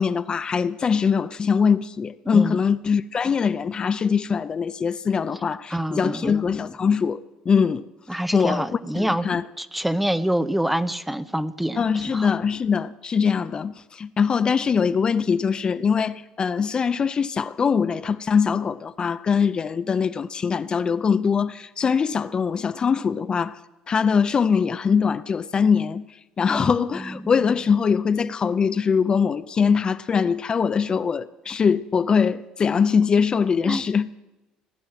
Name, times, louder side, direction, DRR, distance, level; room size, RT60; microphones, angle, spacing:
voice 1, 0.0-7.2 7.5-7.8 8.1-8.6 9.0-9.5 11.8-23.6 23.9-26.1 26.4-34.1, left 6 dB, 35° left, 0.5 m, -22 dB
voice 2, 5.7-6.3 8.1-9.3 9.6-12.3 26.5-27.3 33.7-33.8, right 1 dB, 5° right, 0.7 m, -26 dB
18.0 x 9.1 x 7.7 m
cardioid pair, 100°, 3 cm